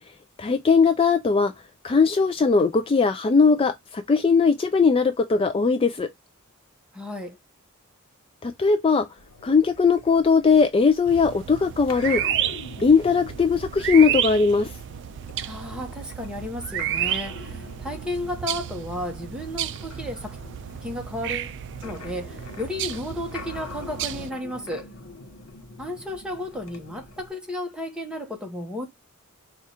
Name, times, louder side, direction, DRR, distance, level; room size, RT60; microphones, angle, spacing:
voice 1, 0.4-1.5 1.8-6.1 8.4-9.1 9.4-12.2 12.8-14.7, left 5 dB, 25° left, 0.3 m, -19 dB
voice 2, 6.9-7.4 15.5-20.4 20.8-21.5 21.8-24.9 25.8-28.9, left 1 dB, 5° right, 1.0 m, -33 dB
sound 1, 9.2-27.3, left 3 dB, 80° left, 0.9 m, -44 dB
sound 2, 11.1-24.3, right 11 dB, 55° right, 0.3 m, -32 dB
4.6 x 2.4 x 4.2 m
head